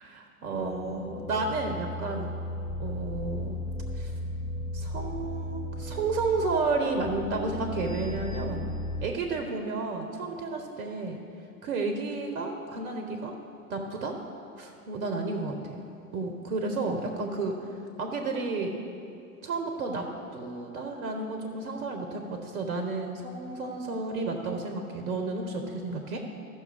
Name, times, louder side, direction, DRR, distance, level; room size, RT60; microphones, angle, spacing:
voice 1, 0.1-2.3 2.8-3.6 3.9-4.1 4.7-8.7 9.0-11.2 11.6-13.3 13.7-14.2 14.6-15.8 16.1-17.5 18.0-18.7 19.4-20.1 20.3-26.2, right 3 dB, 65° right, 3 dB, 1.2 m, -32 dB
sound 1, 0.5-9.1, left 1 dB, 15° left, 0.5 m, -36 dB
15.5 x 6.1 x 3.4 m, 2.6 s
figure-of-eight pair, 85°, 43 cm